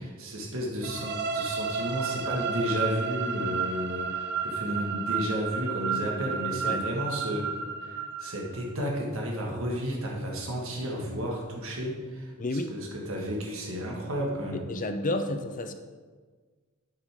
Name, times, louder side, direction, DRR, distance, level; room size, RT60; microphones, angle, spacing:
voice 1, 0.0-7.5 7.9-12.3 12.7-14.7, equal, 70° right, -1 dB, 1.9 m, -32 dB
sound 1, 0.8-8.6, right 6 dB, 55° right, 0.7 m, -32 dB
voice 2, 12.4-12.7 14.7-15.7, left 2 dB, 40° left, 8 dB, 0.6 m, -30 dB
9.0 x 7.6 x 3.8 m, 1.5 s
head